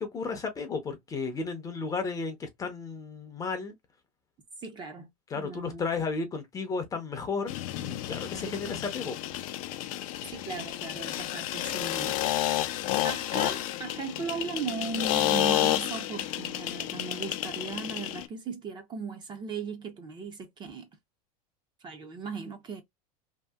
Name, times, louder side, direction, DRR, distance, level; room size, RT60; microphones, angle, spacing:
voice 1, 0.0-3.7 5.3-9.2, left 4 dB, 20° left, 0.6 m, -33 dB
voice 2, 4.6-5.1 5.4-5.8 8.5-8.9 10.3-12.2 13.0-20.9 21.8-22.8, right 5 dB, 25° right, 0.6 m, -37 dB
sound 1, 7.5-18.3, left 14 dB, 65° left, 0.5 m, -31 dB
2.7 x 2.6 x 2.2 m
supercardioid pair, 140°, 19 cm